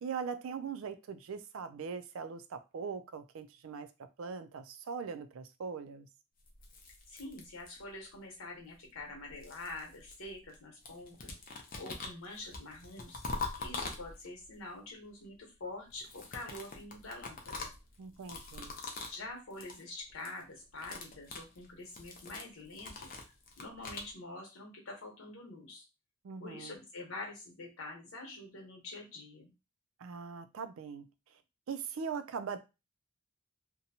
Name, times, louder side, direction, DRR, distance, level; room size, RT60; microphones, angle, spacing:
voice 1, 0.0-3.9 4.2-6.1 18.0-18.8 26.2-26.8 30.0-31.4 31.7-32.6, right 6 dB, 75° right, 0.4 m, -41 dB
sound 1, 6.5-8.0 9.0-10.6 10.8-14.5 15.9-19.2 19.5-19.8 20.1-20.4 20.7-24.1, left 3 dB, 40° left, 0.5 m, -44 dB
voice 2, 7.1-11.3 11.8-13.2 13.6-17.7 19.0-23.1 23.6-25.9 26.4-29.5, left 2 dB, 75° left, 1.1 m, -46 dB
2.8 x 2.2 x 2.7 m
head